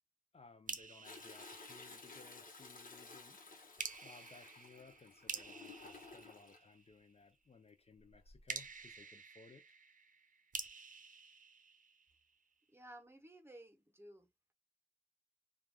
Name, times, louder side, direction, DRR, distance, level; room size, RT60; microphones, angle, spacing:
voice 1, 0.3-3.4 4.0-9.6, left 4 dB, 45° left, 0.5 m, -61 dB
sound 1, 0.7-2.4 3.8-7.1 8.5-12.4, right 5 dB, 65° right, 0.6 m, -49 dB
Toilet flush, 1.0-6.6 8.1-8.5 9.0-9.1, left 3 dB, 70° left, 1.0 m, -55 dB
voice 2, 12.7-14.3, right 1 dB, 15° right, 0.8 m, -56 dB
3.3 x 2.3 x 2.3 m
wide cardioid pair, 70°, 15 cm